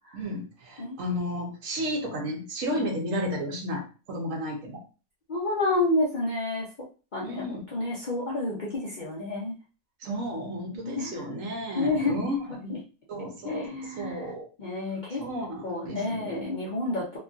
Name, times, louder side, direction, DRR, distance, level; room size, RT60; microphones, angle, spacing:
voice 1, 0.1-4.8 7.2-7.7 10.0-12.4 13.1-14.5 15.2-16.5, equal, 70° right, 2 dB, 1.1 m, -33 dB
voice 2, 5.3-6.7 7.1-9.5 10.8-11.2 11.7-12.2 12.5-12.8 13.4-14.3 14.6-15.2 15.6-17.2, left 2 dB, 45° left, -6 dB, 0.6 m, -29 dB
2.9 x 2.5 x 2.3 m, 0.34 s
omnidirectional pair, 1.5 m